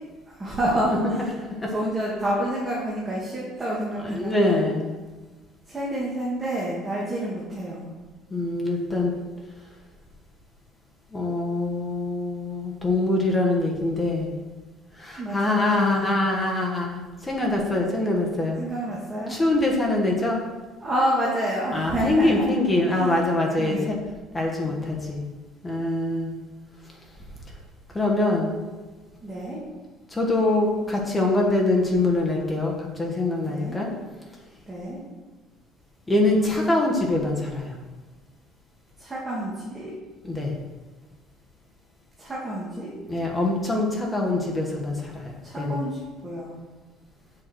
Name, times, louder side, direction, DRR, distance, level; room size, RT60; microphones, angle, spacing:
voice 1, 0.4-1.3 1.7-4.6 5.7-7.9 15.2-16.1 18.6-19.4 20.8-22.6 22.9-23.2 23.6-23.9 24.7-24.8 29.2-29.6 33.5-33.8 34.7-35.0 39.0-39.9 42.2-42.9 45.4-46.6, right 1 dB, 15° right, -6 dB, 2.3 m, -28 dB
voice 2, 4.0-4.9 8.3-9.1 11.1-14.3 15.0-18.6 19.3-20.4 21.7-24.0 24.3-25.2 25.6-26.4 27.9-28.5 30.1-33.9 36.1-37.8 40.2-40.5 43.1-45.8, left 2 dB, 15° left, 0 dB, 1.4 m, -24 dB
7.9 x 5.9 x 6.3 m, 1.2 s
cardioid pair, 130°, 0 cm